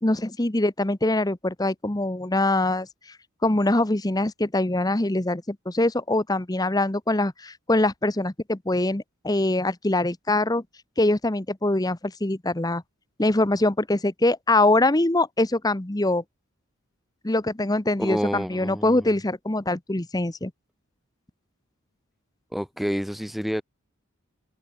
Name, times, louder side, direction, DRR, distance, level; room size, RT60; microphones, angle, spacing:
voice 1, 0.0-2.9 3.4-10.6 11.0-12.8 13.2-16.2 17.2-20.5, left 2 dB, 15° left, 0.9 m, -23 dB
voice 2, 18.0-19.1 22.5-23.6, equal, ahead, 0.4 m, -28 dB
open air
head